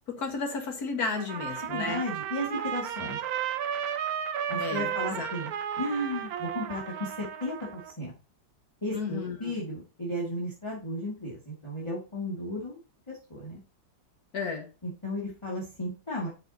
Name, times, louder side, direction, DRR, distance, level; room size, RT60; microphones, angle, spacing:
voice 1, 0.1-2.0 4.6-5.3 8.9-9.5 14.3-14.7, left 4 dB, 55° left, 2 dB, 2.2 m, -33 dB
Trumpet, 1.1-7.9, right 9 dB, 65° right, 1.0 m, -33 dB
voice 2, 1.6-3.2 4.5-5.5 5.8-8.1 8.8-12.8 13.1-13.6 14.8-16.3, left 1 dB, 15° left, -5 dB, 2.2 m, -34 dB
9.2 x 6.2 x 2.9 m, 0.32 s
omnidirectional pair, 2.0 m